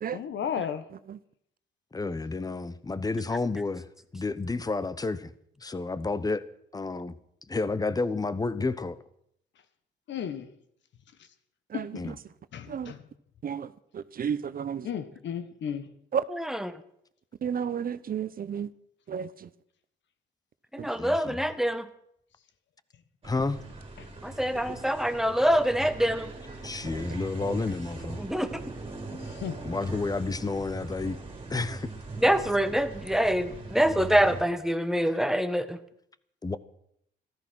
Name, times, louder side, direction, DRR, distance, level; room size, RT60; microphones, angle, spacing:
voice 1, 0.1-0.9 10.1-10.5 11.7-12.1 12.5-13.1 14.8-15.9 24.0-24.1 29.1-29.6, left 8 dB, 65° left, 1.4 m, -34 dB
voice 2, 1.9-3.9 4.1-5.3 5.6-6.5 6.7-7.2 7.5-9.0 12.0-12.1 21.0-21.4 23.2-23.6 26.6-28.2 29.6-31.2 31.5-31.9 36.4-36.6, left 3 dB, 20° left, 0.9 m, -30 dB
voice 3, 14.2-14.9 16.1-16.2 17.4-18.7 19.1-19.3, right 7 dB, 45° right, 0.8 m, -30 dB
voice 4, 16.3-16.7 20.7-21.9 24.2-26.3 28.2-28.5 32.2-35.8, equal, ahead, 1.2 m, -25 dB
sound 1, 23.2-34.4, right 3 dB, 25° right, 3.2 m, -41 dB
14.0 x 13.5 x 6.3 m
cardioid pair, 90°, 20 cm